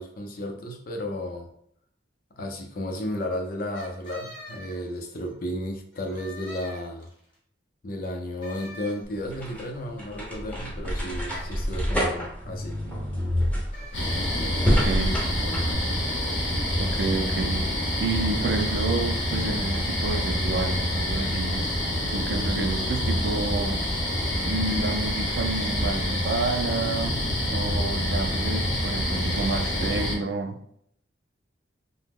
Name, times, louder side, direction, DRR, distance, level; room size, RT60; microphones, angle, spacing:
voice 1, 0.0-1.5 2.4-7.1 7.8-12.8, left 1 dB, 50° left, 0.5 m, -33 dB
sound 1, 3.7-5.4 5.9-7.3 8.4-9.4 11.3-11.7 13.7-14.2, equal, 25° left, 1.0 m, -44 dB
sound 2, 9.0-15.7, equal, 5° left, 0.6 m, -28 dB
sound 3, 13.9-30.2, left 1 dB, 90° left, 0.8 m, -27 dB
voice 2, 14.7-15.2 16.8-17.7 18.0-21.7 22.1-23.8 24.4-27.2 27.5-30.6, right 3 dB, 65° right, 0.4 m, -29 dB
2.8 x 2.0 x 3.6 m
head